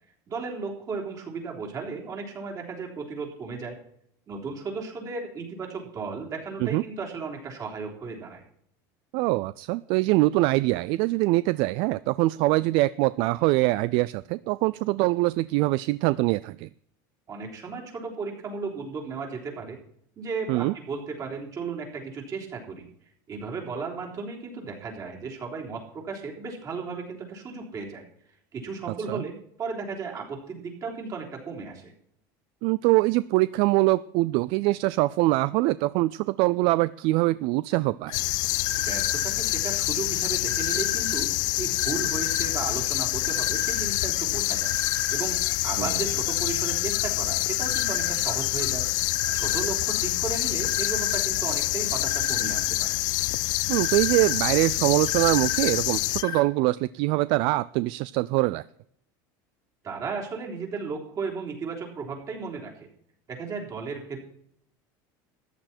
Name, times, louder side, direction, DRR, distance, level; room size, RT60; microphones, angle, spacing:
voice 1, 0.3-3.8 4.3-8.4 17.3-19.8 20.2-22.8 23.3-28.0 28.5-31.9 38.8-41.3 41.6-45.4 45.6-48.8 49.3-53.0 59.8-62.9 63.3-64.2, right 4 dB, 35° right, 0 dB, 3.6 m, -35 dB
voice 2, 9.1-16.7 20.5-20.7 29.1-29.2 32.6-38.2 45.8-46.0 53.7-58.6, right 20 dB, 60° right, 18 dB, 0.4 m, -23 dB
sound 1, 38.1-56.2, left 21 dB, 80° left, 0.5 m, -27 dB
sound 2, 38.1-56.4, left 8 dB, 50° left, 1.7 m, -36 dB
14.0 x 10.0 x 4.4 m, 0.69 s
supercardioid pair, 135°, 10 cm